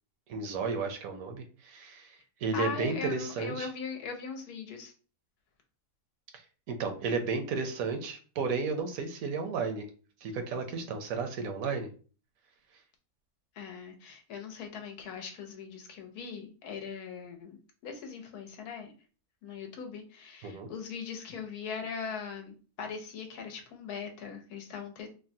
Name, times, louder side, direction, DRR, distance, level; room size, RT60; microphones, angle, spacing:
voice 1, 0.3-3.7 6.3-6.4 6.7-9.9 10.2-11.9 20.4-20.7, right 4 dB, 70° right, 6 dB, 1.0 m, -33 dB
voice 2, 2.5-4.9 13.5-18.9 19.4-25.1, left 6 dB, 85° left, 3 dB, 1.2 m, -40 dB
3.6 x 2.1 x 2.6 m, 0.38 s
omnidirectional pair, 1.6 m